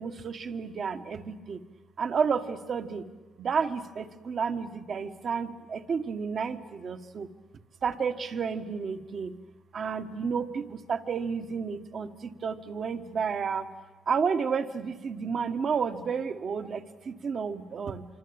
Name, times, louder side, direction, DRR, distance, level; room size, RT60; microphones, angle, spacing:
voice 1, 0.0-1.6 2.0-3.1 3.4-7.3 7.8-9.3 9.7-13.7 14.1-18.0, right 6 dB, 50° right, 8 dB, 1.5 m, -31 dB
26.0 x 24.5 x 8.9 m, 1.3 s
cardioid pair, 90°, 0 cm